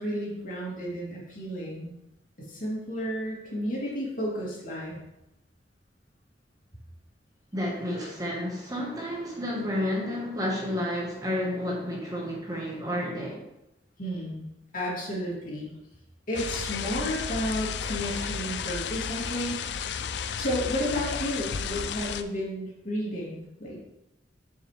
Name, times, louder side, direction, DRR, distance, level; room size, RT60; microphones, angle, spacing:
voice 1, 0.0-1.9 2.4-5.0 14.0-14.4 14.7-15.7 16.3-19.6 20.4-23.8, equal, 50° left, -5 dB, 2.6 m, -32 dB
voice 2, 7.5-13.4, left 1 dB, 20° right, -3 dB, 1.3 m, -31 dB
sound 1, 16.3-22.2, left 7 dB, 70° left, 0.4 m, -33 dB
7.1 x 6.8 x 3.3 m, 0.89 s
head